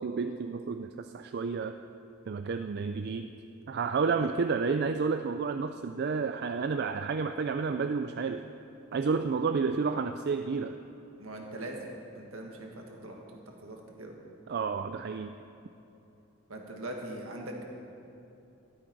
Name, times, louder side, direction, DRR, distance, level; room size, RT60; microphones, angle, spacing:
voice 1, 0.0-1.8 2.3-3.3 3.7-8.5 8.9-10.8 14.5-15.4, right 5 dB, 50° right, 8 dB, 0.4 m, -30 dB
voice 2, 11.2-11.9 12.1-14.1 16.5-17.6, right 1 dB, 70° right, 1 dB, 1.7 m, -41 dB
13.0 x 12.5 x 4.6 m, 2.9 s
head